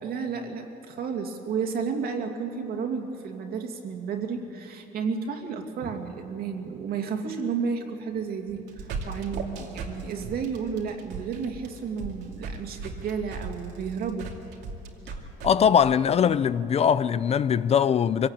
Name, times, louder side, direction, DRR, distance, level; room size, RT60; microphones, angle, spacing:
voice 1, 0.0-14.3, right 6 dB, 65° right, 2.4 m, -32 dB
sound 1, 8.5-15.5, right 4 dB, 85° right, 2.5 m, -36 dB
voice 2, 15.4-18.3, left 8 dB, 40° left, 0.5 m, -21 dB
24.0 x 17.0 x 8.9 m
cardioid pair, 110°, 17 cm